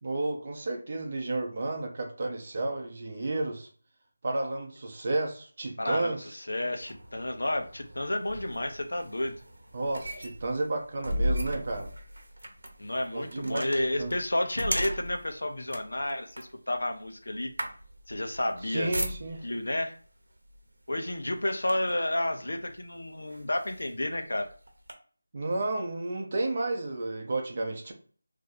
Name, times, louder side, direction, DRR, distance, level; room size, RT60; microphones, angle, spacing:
voice 1, 0.0-3.7 4.2-6.2 9.7-11.9 13.1-14.1 18.6-19.5 25.3-27.9, right 2 dB, 30° right, 2 dB, 0.6 m, -32 dB
voice 2, 5.8-9.4 12.8-17.5 18.1-18.9 19.4-20.0 20.9-24.5, left 1 dB, 80° left, 5 dB, 0.7 m, -31 dB
sound 1, 6.8-19.6 20.5-20.7 21.1-22.1 22.7-22.8 23.3-24.9, equal, 80° right, 0.9 m, -37 dB
2.7 x 2.5 x 4.0 m, 0.42 s
figure-of-eight pair, 175°, 0 cm